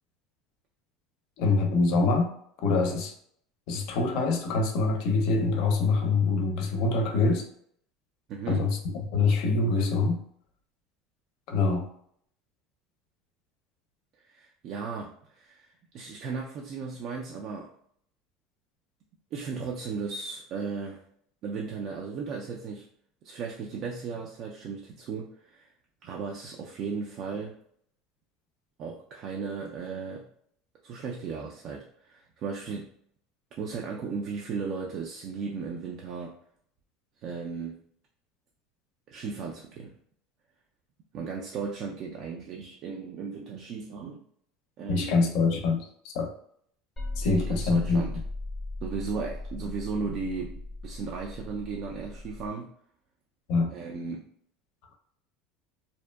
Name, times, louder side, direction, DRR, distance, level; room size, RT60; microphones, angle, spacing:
voice 1, 1.4-2.3 2.6-3.1 3.7-7.5 8.5-8.8 9.1-10.2 11.5-11.9 44.9-46.3 47.2-48.0 53.5-53.7, left 3 dB, 65° left, 3 dB, 0.5 m, -25 dB
voice 2, 8.3-8.7 14.2-17.7 19.3-21.0 21.4-22.9 23.2-25.7 26.0-27.6 28.8-30.3 30.8-32.9 33.6-36.3 37.2-37.8 39.1-40.0 41.1-44.2 44.8-45.2 47.2-48.1 48.8-52.7 53.7-54.2, right 5 dB, 50° right, 0 dB, 0.3 m, -36 dB
sound 1, 47.0-52.5, left 2 dB, 10° left, 0.6 m, -37 dB
2.6 x 2.1 x 2.2 m, 0.66 s
supercardioid pair, 130°, 0 cm